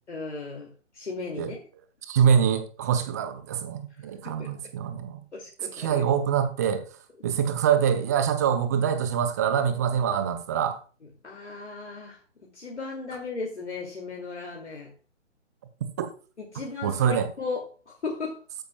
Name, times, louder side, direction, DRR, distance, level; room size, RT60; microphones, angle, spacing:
voice 1, 0.1-1.6 4.0-4.5 5.3-6.0 11.0-14.9 16.4-18.4, left 4 dB, 70° left, 2.6 m, -36 dB
voice 2, 2.0-5.2 5.8-6.8 7.2-10.8 16.0-16.1 16.8-17.3, right 8 dB, 15° right, 0.6 m, -24 dB
13.0 x 10.0 x 2.3 m
figure-of-eight pair, 135°, 36 cm